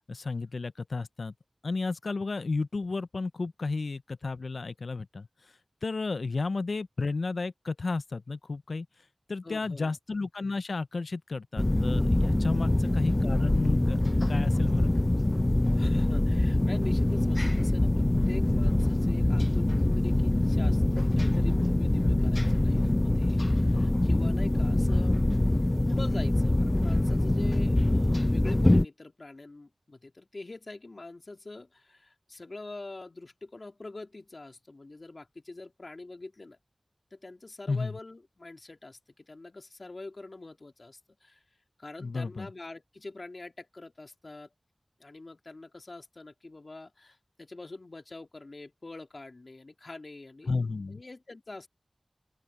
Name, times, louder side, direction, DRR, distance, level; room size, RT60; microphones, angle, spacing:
voice 1, 0.1-1.3 1.6-5.3 5.8-8.9 9.3-14.9 22.0-22.2 24.5-24.9 37.7-38.0 42.0-42.5 50.5-51.0, left 3 dB, 90° left, 0.5 m, -32 dB
voice 2, 9.4-9.9 12.6-12.8 15.7-25.2 25.9-36.6 37.1-41.4 41.8-44.5 45.0-50.5 50.9-51.7, left 2 dB, 60° left, 2.5 m, -45 dB
sound 1, 11.6-28.9, left 1 dB, 30° left, 0.4 m, -24 dB
open air
wide cardioid pair, 50°, 0 cm